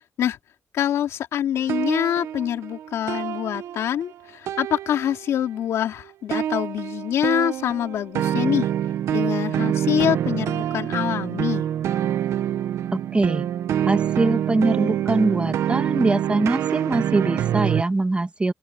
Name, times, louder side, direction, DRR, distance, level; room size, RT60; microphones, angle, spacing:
voice 1, 0.7-8.7 9.1-11.7, left 10 dB, 90° left, 3.3 m, -25 dB
sound 1, 1.6-4.2 4.5-5.5 6.3-17.8, right 10 dB, 85° right, 0.7 m, -26 dB
voice 2, 12.9-13.5 13.8-18.5, right 2 dB, 25° right, 1.6 m, -23 dB
open air
cardioid pair, 65°, 5 cm